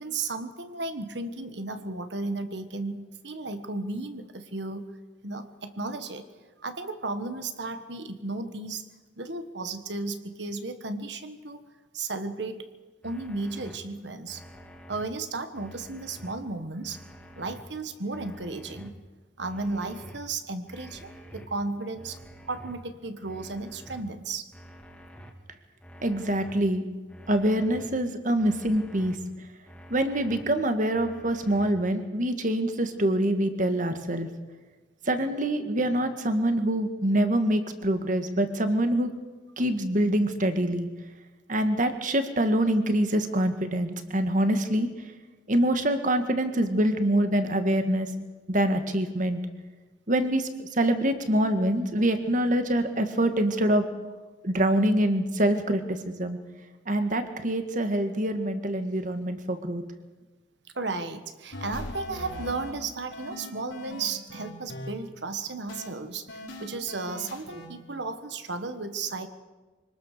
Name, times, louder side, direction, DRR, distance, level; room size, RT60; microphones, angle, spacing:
voice 1, 0.0-5.0 5.2-6.2 6.6-8.8 9.2-11.6 11.9-12.7 13.0-14.4 14.9-17.0 17.4-18.9 19.4-24.5 60.7-69.3, right 3 dB, 65° right, 9 dB, 1.5 m, -34 dB
sound 1, 13.0-13.8 14.3-15.0 15.5-16.3 16.8-17.6 18.1-18.9 19.4-20.2 20.7-21.5 21.9-22.7 23.2-24.0 24.5-25.3 25.8-26.6 27.1-27.9 28.4-29.2 29.6-30.4 30.9-31.7, equal, 5° left, 2.1 m, -47 dB
voice 2, 26.0-26.9 27.3-29.2 29.9-34.3 35.1-39.1 39.6-40.9 41.5-44.9 45.5-48.1 48.5-49.4 50.1-53.8 54.4-56.4 56.9-59.8, right 1 dB, 40° right, 8 dB, 1.8 m, -25 dB
sound 2, 61.5-62.7 63.1-64.9 65.7-65.9 66.3-67.7, left 1 dB, 80° left, 4.3 m, -40 dB
25.5 x 19.5 x 6.7 m, 1.2 s
head